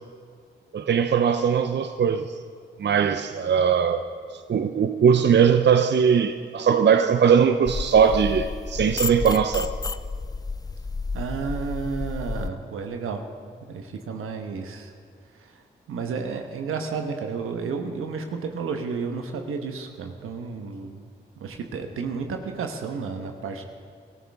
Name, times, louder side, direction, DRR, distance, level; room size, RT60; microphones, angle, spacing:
voice 1, 0.7-2.4 2.8-4.0 4.5-9.7, right 7 dB, 55° right, 0.7 m, -20 dB
sound 1, 7.7-12.5, left 3 dB, 20° left, 0.4 m, -31 dB
voice 2, 11.1-13.2 13.6-14.9 15.3-15.6 15.9-21.0 21.4-23.6, right 5 dB, 85° right, 1.2 m, -32 dB
21.5 x 13.5 x 3.6 m
supercardioid pair, 40°, 21 cm